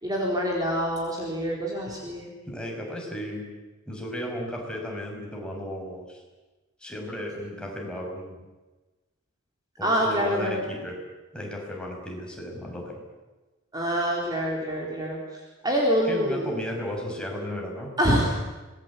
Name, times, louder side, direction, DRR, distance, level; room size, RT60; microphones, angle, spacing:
voice 1, 0.0-2.3 9.8-10.6 13.7-15.2 15.6-16.5 18.0-18.4, equal, 20° right, -2 dB, 4.2 m, -25 dB
voice 2, 2.4-3.4 3.9-6.2 6.8-8.4 9.8-11.0 11.3-13.0 16.1-17.9, equal, 5° left, -1 dB, 6.4 m, -34 dB
26.0 x 20.5 x 8.6 m, 1.2 s
head